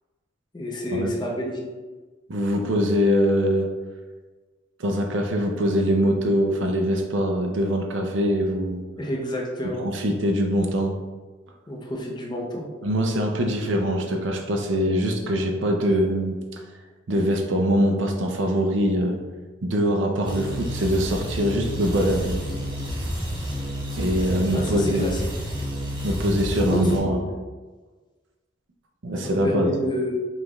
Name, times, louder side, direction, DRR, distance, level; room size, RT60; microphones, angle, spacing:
voice 1, 0.5-1.7 9.0-9.8 11.7-12.7 24.5-25.2 26.6-27.3 29.2-30.1, left 1 dB, 25° left, -1 dB, 0.6 m, -29 dB
voice 2, 2.3-3.7 4.8-8.8 9.8-10.9 12.8-16.4 17.1-19.2 19.6-22.4 24.0-25.2 26.0-27.2 29.0-29.7, equal, 70° right, 2 dB, 0.5 m, -23 dB
sound 1, 20.2-27.0, equal, 25° right, 0.8 m, -30 dB
5.2 x 2.4 x 3.0 m, 1.3 s
head